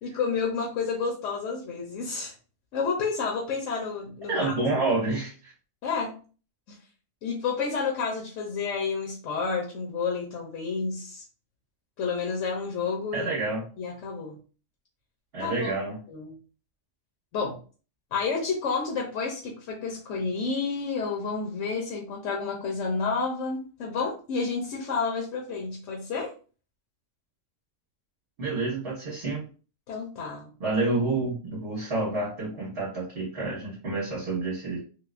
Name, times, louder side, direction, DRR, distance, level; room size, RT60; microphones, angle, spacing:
voice 1, 0.0-2.3 2.7-4.5 5.8-6.2 6.7-6.8 7.2-11.2 12.0-13.3 13.8-14.4 15.4-15.7 16.1-16.4 17.3-17.6 18.1-26.3 29.9-30.5, left 5 dB, 90° left, -1 dB, 1.1 m, -30 dB
voice 2, 4.3-5.5 13.1-13.6 15.3-16.0 28.4-29.4 30.6-34.8, right 2 dB, 50° right, -8 dB, 1.5 m, -28 dB
3.4 x 2.9 x 2.5 m, 0.37 s
omnidirectional pair, 1.3 m